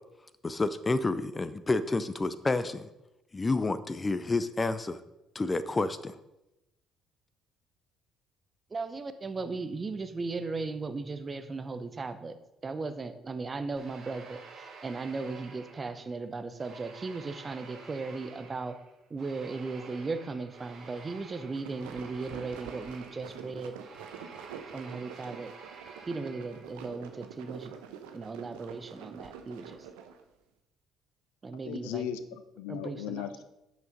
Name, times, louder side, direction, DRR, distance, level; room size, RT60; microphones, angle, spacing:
voice 1, 0.4-2.9 3.3-5.0 5.3-6.1, left 3 dB, 25° left, 13 dB, 0.6 m, -29 dB
voice 2, 8.7-12.4 12.6-18.8 19.1-23.7 24.7-25.5 26.1-27.7 28.1-29.9 31.4-32.1 32.7-33.3, right 3 dB, 30° right, 10 dB, 0.9 m, -37 dB
sound 1, 13.8-16.2 16.6-26.9, right 4 dB, 50° right, 1.7 m, -50 dB
sound 2, 21.3-30.2, right 8 dB, 70° right, 0.8 m, -46 dB
voice 3, 31.6-33.4, left 10 dB, 70° left, 11 dB, 0.6 m, -37 dB
8.6 x 6.3 x 5.1 m, 0.92 s
figure-of-eight pair, 50°, 0 cm